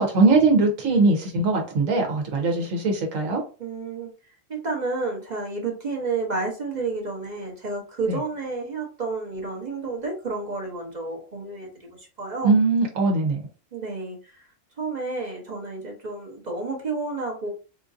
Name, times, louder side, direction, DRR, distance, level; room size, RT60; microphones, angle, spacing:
voice 1, 0.0-3.4 8.1-8.2 12.4-13.4, right 3 dB, 75° right, 1.2 m, -21 dB
voice 2, 3.6-4.1 4.5-12.5 13.7-14.4 14.8-17.5, right 3 dB, 40° right, 0.8 m, -30 dB
3.9 x 2.5 x 2.6 m
omnidirectional pair, 1.4 m